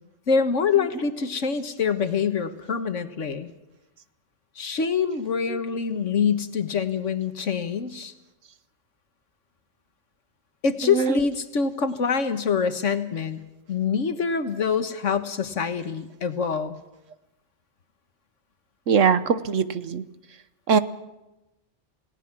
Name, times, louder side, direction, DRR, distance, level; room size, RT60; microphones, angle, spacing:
voice 1, 0.3-3.5 4.6-8.1 10.6-13.4 13.7-16.8, left 6 dB, 85° left, 9 dB, 1.7 m, -25 dB
voice 2, 10.8-11.2 18.9-20.0 20.7-20.8, right 6 dB, 85° right, 12 dB, 1.4 m, -21 dB
28.5 x 18.0 x 6.1 m, 0.99 s
omnidirectional pair, 1.3 m